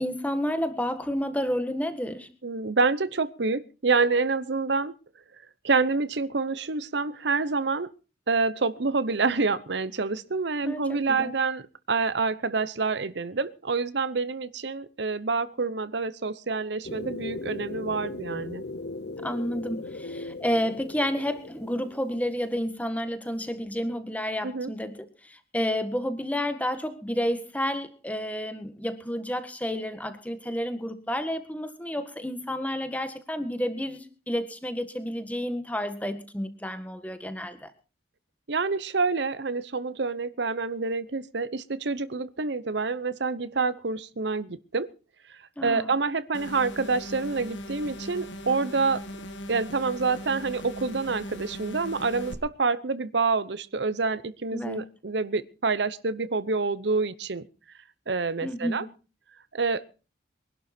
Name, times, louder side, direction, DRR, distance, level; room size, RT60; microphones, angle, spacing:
voice 1, 0.0-2.3 10.6-11.3 19.2-37.7 45.6-45.9 54.5-54.8 58.4-58.9, equal, 10° left, 10 dB, 1.6 m, -30 dB
voice 2, 2.4-4.9 5.6-7.9 8.3-18.6 24.4-24.7 38.5-44.9 45.3-49.0 49.5-57.5 58.1-58.9 59.5-59.9, right 4 dB, 65° right, 16 dB, 0.8 m, -27 dB
sound 1, 16.8-22.5, left 2 dB, 60° left, 1.0 m, -38 dB
sound 2, 46.3-52.3, equal, 80° left, 2.0 m, -39 dB
23.0 x 11.5 x 4.4 m, 0.35 s
head